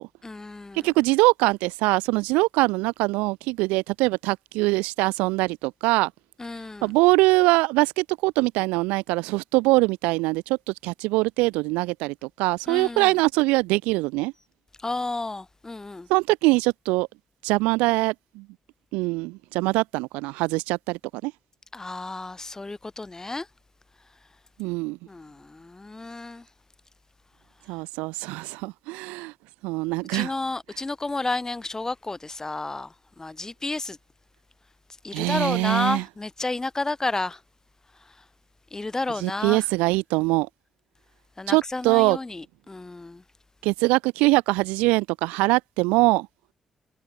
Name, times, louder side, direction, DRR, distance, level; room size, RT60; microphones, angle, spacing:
voice 1, 0.2-0.9 6.4-6.9 12.7-13.1 14.8-16.1 21.7-23.4 25.1-26.4 30.1-32.9 33.2-34.0 35.0-37.4 38.7-39.6 41.4-43.2, left 2 dB, 25° left, 2.7 m, -31 dB
voice 2, 0.8-6.1 6.8-10.6 10.8-14.3 16.1-17.1 17.4-18.4 18.9-21.3 24.6-25.0 27.7-29.3 29.6-30.3 35.1-36.0 39.2-40.5 41.5-42.2 43.6-46.3, right 24 dB, 80° right, 0.8 m, -23 dB
hypercardioid pair, 45°, 2 cm